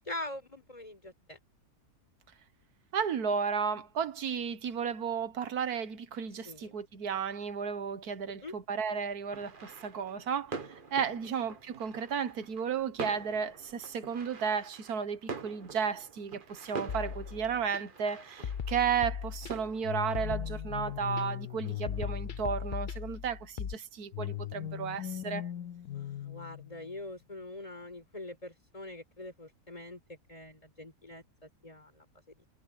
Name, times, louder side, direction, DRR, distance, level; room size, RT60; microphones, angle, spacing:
voice 1, 0.1-1.4 6.4-6.7 8.4-8.5 11.2-11.4 25.9-32.0, left 2 dB, 20° left, 4.6 m, -44 dB
voice 2, 2.9-10.6 10.9-25.5, right 6 dB, 75° right, 1.7 m, -33 dB
sound 1, 9.3-22.7, right 4 dB, 35° right, 1.4 m, -46 dB
sound 2, 16.9-17.8 18.4-19.8 20.1-21.2 21.9-23.7, left 7 dB, 45° left, 0.7 m, -38 dB
sound 3, 19.8-23.0 24.1-27.0, left 12 dB, 85° left, 1.2 m, -39 dB
omnidirectional pair, 1.7 m